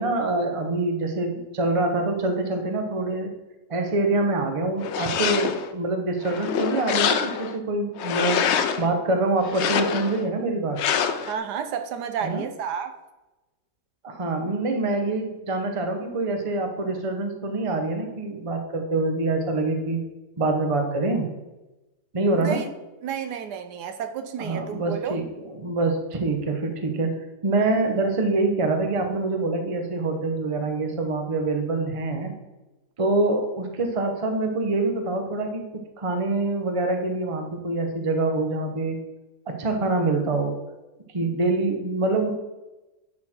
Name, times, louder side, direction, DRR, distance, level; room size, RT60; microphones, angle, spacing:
voice 1, 0.0-3.3 3.7-8.4 8.8-10.8 12.2-12.4 14.0-20.0 20.4-21.3 22.1-22.6 24.4-25.3 25.5-27.1 27.4-32.3 33.0-39.0 39.5-40.5 41.1-42.3, right 2 dB, 25° right, 0.7 m, -25 dB
sound 1, 4.8-5.7 6.2-7.6 8.0-8.9 9.4-10.2 10.8-11.3, left 8 dB, 80° left, 0.6 m, -25 dB
voice 2, 11.3-12.9 22.3-22.7 23.0-25.2, right 7 dB, 75° right, 1.2 m, -31 dB
10.5 x 4.4 x 4.4 m
omnidirectional pair, 1.8 m